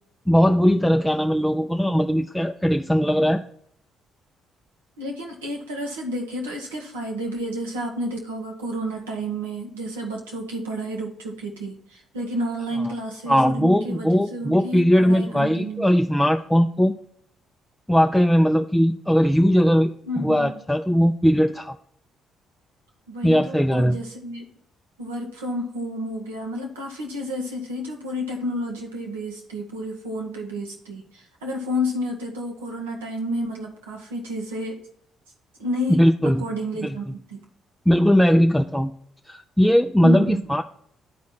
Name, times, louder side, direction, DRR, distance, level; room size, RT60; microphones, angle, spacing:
voice 1, 0.3-3.4 13.3-16.9 17.9-19.9 20.2-21.7 23.2-24.0 35.9-36.5 36.8-36.9 37.9-38.9 39.3-40.6, equal, ahead, 4 dB, 0.5 m, -19 dB
voice 2, 5.0-16.0 20.1-20.6 23.1-24.4 25.0-34.8 35.6-37.4 40.0-40.4, equal, 85° right, 0 dB, 1.2 m, -31 dB
10.5 x 4.7 x 4.2 m, 0.70 s
hypercardioid pair, 50°, 0 cm